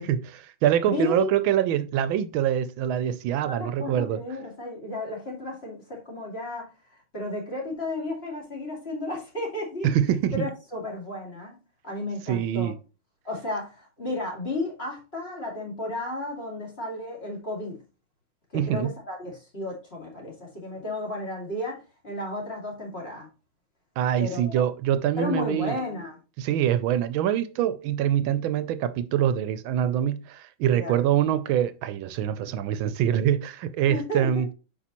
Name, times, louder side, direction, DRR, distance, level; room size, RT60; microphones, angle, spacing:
voice 1, 0.0-4.2 9.8-10.5 12.3-12.8 18.5-18.9 24.0-25.8 26.4-34.5, right 10 dB, 85° right, 1.4 m, -25 dB
voice 2, 0.8-1.3 3.4-6.7 7.1-9.9 10.3-11.5 11.8-12.7 13.2-17.8 18.5-23.3 24.2-24.7 25.2-26.2 30.7-31.0 33.9-34.4, left 2 dB, 30° left, 2.5 m, -33 dB
8.3 x 5.5 x 3.0 m
omnidirectional pair, 2.2 m